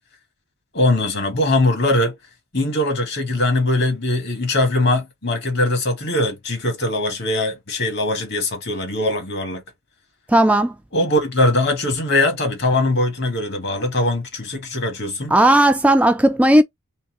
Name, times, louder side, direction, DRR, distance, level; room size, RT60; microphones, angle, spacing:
voice 1, 0.7-2.1 2.5-9.6 10.9-15.3, left 2 dB, 55° left, 1.6 m, -21 dB
voice 2, 10.3-10.7 15.3-16.6, right 1 dB, 5° right, 0.3 m, -14 dB
4.1 x 3.3 x 3.8 m
head